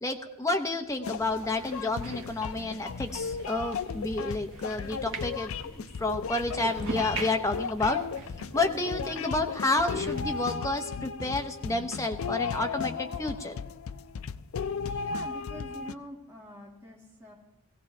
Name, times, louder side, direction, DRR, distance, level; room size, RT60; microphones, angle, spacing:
voice 1, 0.0-8.0 8.5-13.6, left 2 dB, 15° left, 4 dB, 0.8 m, -30 dB
sound 1, 1.0-15.9, left 6 dB, 65° left, 0.4 m, -35 dB
sound 2, 1.1-9.3, left 1 dB, 45° left, 7.1 m, -50 dB
sound 3, 1.2-9.1 9.5-10.4, right 3 dB, 60° right, 1.2 m, -43 dB
voice 2, 9.0-9.3 14.8-17.3, equal, 10° right, -4 dB, 1.8 m, -45 dB
18.5 x 16.0 x 3.3 m, 0.91 s
head